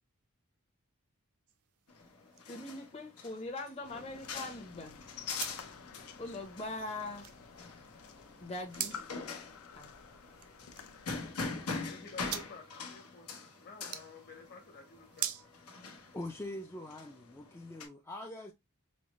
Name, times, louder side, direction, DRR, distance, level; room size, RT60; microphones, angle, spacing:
sound 1, 1.5-16.6, right 11 dB, 70° right, 0.5 m, -47 dB
sound 2, 1.9-17.9, left 4 dB, 85° left, 1.0 m, -44 dB
voice 1, 2.5-5.0 6.2-7.3 8.2-9.0 9.7-9.9, left 2 dB, 30° left, 0.8 m, -42 dB
sound 3, 3.8-11.3, left 5 dB, 70° left, 0.6 m, -52 dB
voice 2, 11.7-15.3, left 4 dB, 45° left, 1.2 m, -52 dB
voice 3, 16.1-18.5, left 1 dB, 10° left, 0.3 m, -43 dB
5.4 x 2.0 x 3.0 m
head